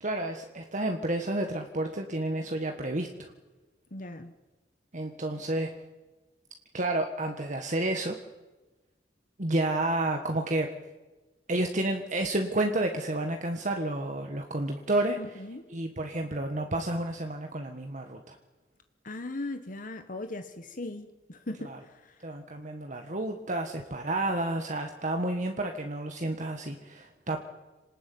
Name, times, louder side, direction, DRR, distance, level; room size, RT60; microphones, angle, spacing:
voice 1, 0.0-3.3 4.9-5.7 6.7-8.2 9.4-10.7 11.5-15.2 15.7-18.4 21.6-21.8 22.2-27.4, right 2 dB, 45° right, 4 dB, 1.6 m, -30 dB
voice 2, 3.9-4.3 15.2-15.6 19.0-22.3, left 2 dB, 50° left, 8 dB, 1.3 m, -39 dB
27.0 x 19.0 x 9.4 m, 1.2 s
head